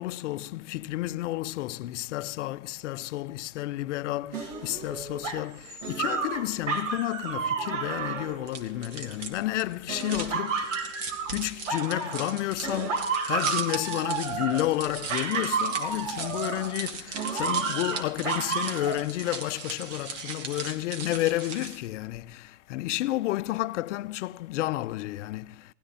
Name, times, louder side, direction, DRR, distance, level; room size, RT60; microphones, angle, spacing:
voice 1, 0.0-25.7, left 17 dB, 70° left, 0.7 m, -31 dB
sound 1, 4.3-9.3 9.9-12.4 12.6-16.8 17.1-19.0, right 5 dB, 85° right, 2.8 m, -31 dB
sound 2, 8.5-21.9, right 4 dB, 40° right, 2.5 m, -38 dB
19.0 x 12.5 x 4.1 m
supercardioid pair, 140°, 37 cm